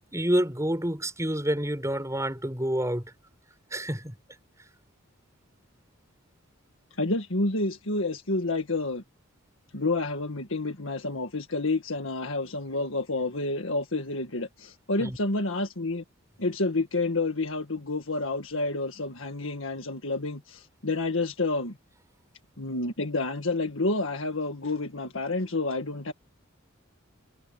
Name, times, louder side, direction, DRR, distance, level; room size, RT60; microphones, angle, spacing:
voice 1, 0.1-3.1 3.7-4.1 15.0-15.2, right 1 dB, 15° right, 5.9 m, -28 dB
voice 2, 7.0-9.0 9.7-16.0 16.4-21.7 22.6-26.1, left 2 dB, 65° left, 1.9 m, -29 dB
head